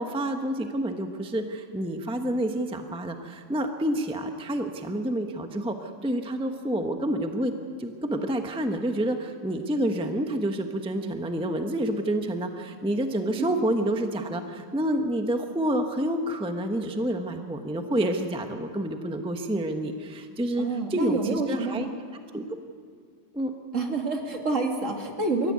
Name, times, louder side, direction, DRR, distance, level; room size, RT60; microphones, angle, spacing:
voice 1, 0.0-7.5 7.8-21.9 22.3-22.4 23.3-23.5, right 1 dB, 5° right, 5 dB, 0.4 m, -28 dB
voice 2, 20.6-21.8 23.7-25.5, right 3 dB, 35° right, 3 dB, 2.3 m, -28 dB
22.5 x 14.5 x 9.5 m, 2.1 s
omnidirectional pair, 2.3 m